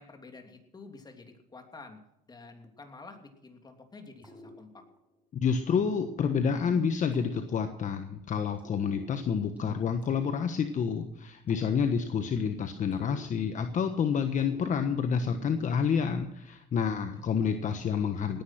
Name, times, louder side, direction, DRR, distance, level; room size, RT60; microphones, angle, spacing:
voice 1, 0.0-2.0 2.3-4.8 16.9-17.3, left 3 dB, 25° left, 4 dB, 3.0 m, -50 dB
sound 1, 4.2-5.2 5.7-8.1 8.6-11.0 11.5-13.9 14.4-15.9, right 1 dB, 10° right, 6.6 m, -49 dB
voice 2, 5.4-18.4, left 6 dB, 50° left, 7 dB, 1.3 m, -29 dB
18.0 x 10.5 x 5.9 m, 0.83 s
cardioid pair, 110°, 17 cm